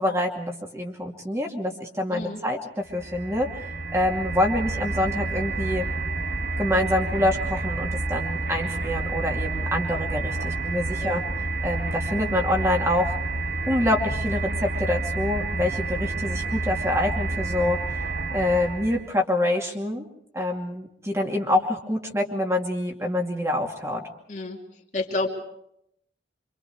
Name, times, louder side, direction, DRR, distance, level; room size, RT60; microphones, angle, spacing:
voice 1, 0.0-5.9 6.6-11.2 11.6-13.2 13.7-20.1 20.3-24.0, left 1 dB, 15° right, 1 dB, 2.5 m, -26 dB
voice 2, 2.1-2.4 9.9-10.0 11.0-11.1 24.3-24.6 24.9-25.3, left 2 dB, 40° left, 1 dB, 2.8 m, -29 dB
sound 1, 2.9-19.1, right 2 dB, 60° right, 1.7 m, -29 dB
26.5 x 26.0 x 4.7 m, 0.74 s
head